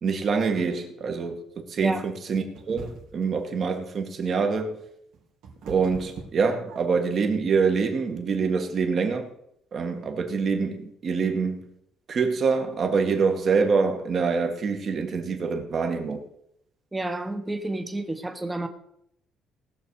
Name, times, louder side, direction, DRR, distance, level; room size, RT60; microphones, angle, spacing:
voice 1, 0.0-4.7 5.7-9.3 9.7-11.7 12.1-16.2, right 5 dB, 45° right, 2.0 m, -25 dB
sound 1, 2.5-3.3 4.8-7.1, right 4 dB, 80° right, 2.7 m, -42 dB
voice 2, 16.9-18.7, right 2 dB, 10° right, 1.3 m, -30 dB
18.5 x 7.0 x 4.9 m
cardioid pair, 130°, 0 cm